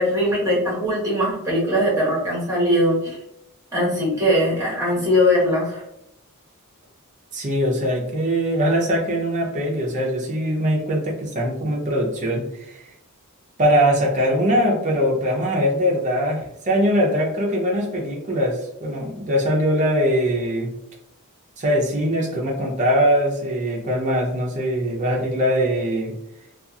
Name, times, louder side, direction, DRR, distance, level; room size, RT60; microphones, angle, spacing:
voice 1, 0.0-3.2 3.7-5.8, equal, 15° right, -6 dB, 1.2 m, -20 dB
voice 2, 7.3-12.9 13.6-20.7 21.6-26.1, equal, 35° right, -1 dB, 0.5 m, -22 dB
2.7 x 2.3 x 2.3 m, 0.80 s
head